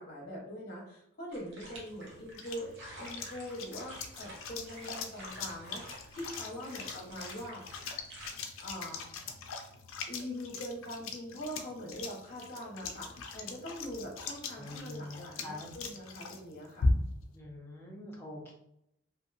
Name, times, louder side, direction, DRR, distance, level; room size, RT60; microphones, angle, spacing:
voice 1, 0.0-7.6 8.6-9.0 10.1-16.9, equal, 45° left, -2 dB, 0.9 m, -43 dB
sound 1, 1.3-8.3, equal, 60° right, 0.7 m, -50 dB
sound 2, 1.8-17.3, left 3 dB, 80° left, 0.4 m, -40 dB
voice 2, 14.6-15.7 17.3-18.5, left 2 dB, 10° left, -3 dB, 0.5 m, -45 dB
2.8 x 2.6 x 2.5 m, 0.76 s
head